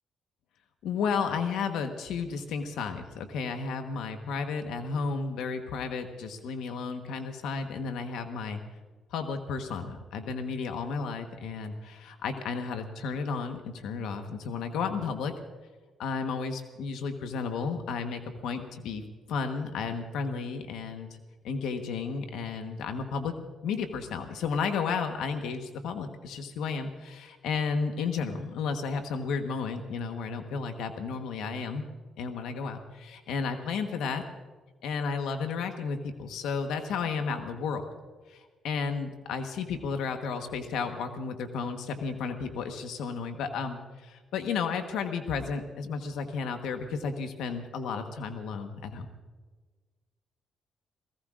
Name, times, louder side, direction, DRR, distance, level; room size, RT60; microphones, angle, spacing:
voice 1, 0.8-8.6 9.1-15.3 16.0-21.1 21.4-23.3 23.6-31.8 32.2-34.2 34.8-37.8 38.3-49.1, left 5 dB, 85° left, 6 dB, 1.2 m, -33 dB
29.5 x 17.5 x 2.5 m, 1.4 s
cardioid pair, 90°, 0 cm